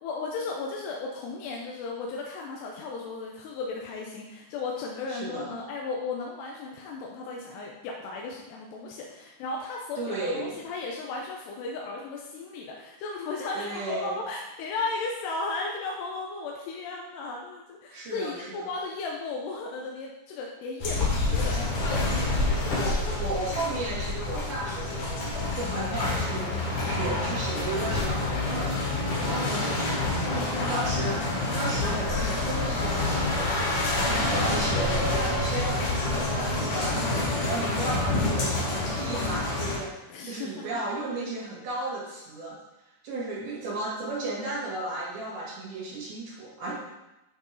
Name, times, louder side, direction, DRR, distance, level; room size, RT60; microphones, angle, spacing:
voice 1, 0.0-23.2 29.8-30.7 40.1-40.7, left 3 dB, 85° left, -1 dB, 2.9 m, -35 dB
voice 2, 5.1-5.5 10.0-10.6 13.5-14.2 17.9-18.7 22.5-22.9 23.2-26.5 26.8-28.8 29.2-31.2 31.5-33.6 34.0-37.0 37.4-39.9 40.2-42.6 43.0-46.7, right 2 dB, 65° right, -9 dB, 3.6 m, -34 dB
sound 1, 20.8-39.8, left 2 dB, 50° left, 3.0 m, -27 dB
9.4 x 4.5 x 4.7 m, 0.95 s
omnidirectional pair, 4.9 m